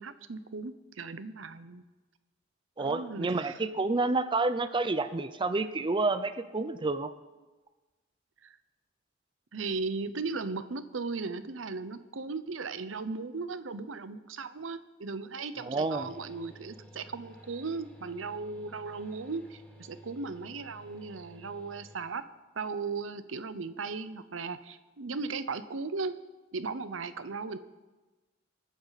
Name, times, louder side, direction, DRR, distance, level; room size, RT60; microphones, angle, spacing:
voice 1, 0.0-1.8 2.8-3.6 8.4-8.6 9.5-22.2 22.6-26.1 26.5-27.6, right 4 dB, 90° right, 13 dB, 0.8 m, -37 dB
voice 2, 2.8-7.1 15.6-16.1, right 3 dB, 25° right, 10 dB, 0.5 m, -29 dB
sound 1, 16.0-22.0, equal, 10° left, 2.3 m, -53 dB
25.5 x 9.4 x 4.1 m, 1.2 s
head